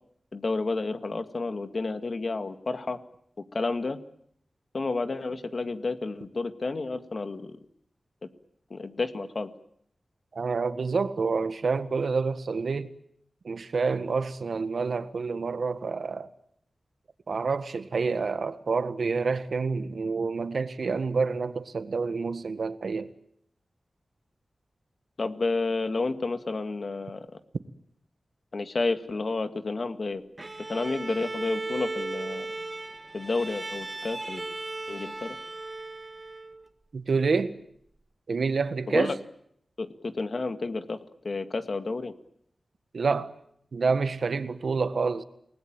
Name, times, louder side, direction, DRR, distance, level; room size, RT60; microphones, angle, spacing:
voice 1, 0.3-3.0 3.5-4.0 4.7-7.6 8.7-9.5 25.2-27.4 28.5-30.2 30.7-32.5 33.1-34.5 34.9-35.4 38.9-39.1 39.8-41.0 41.2-42.1, left 3 dB, 55° left, 2.1 m, -30 dB
voice 2, 10.3-12.9 13.4-16.3 17.3-23.1 36.9-37.6 38.3-39.1 42.9-43.3 43.7-45.2, right 4 dB, 75° right, 1.7 m, -28 dB
Bowed string instrument, 30.4-36.7, right 2 dB, 30° right, 1.7 m, -36 dB
30.0 x 19.5 x 9.0 m
wide cardioid pair, 100°, 0 cm